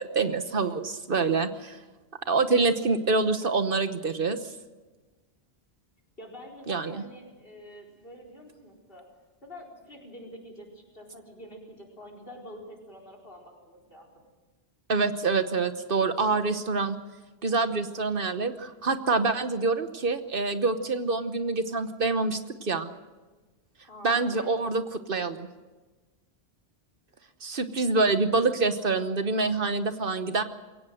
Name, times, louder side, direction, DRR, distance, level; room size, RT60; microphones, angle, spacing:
voice 1, 0.0-1.8 2.3-4.4 6.7-7.0 14.9-17.0 17.4-22.9 24.0-24.8 25.1-25.5 27.4-30.4, right 3 dB, 60° right, 10 dB, 1.2 m, -26 dB
voice 2, 6.2-9.1 9.4-14.3 23.9-24.5, equal, 60° left, 2 dB, 4.7 m, -47 dB
22.0 x 18.0 x 7.8 m, 1.2 s
omnidirectional pair, 1.1 m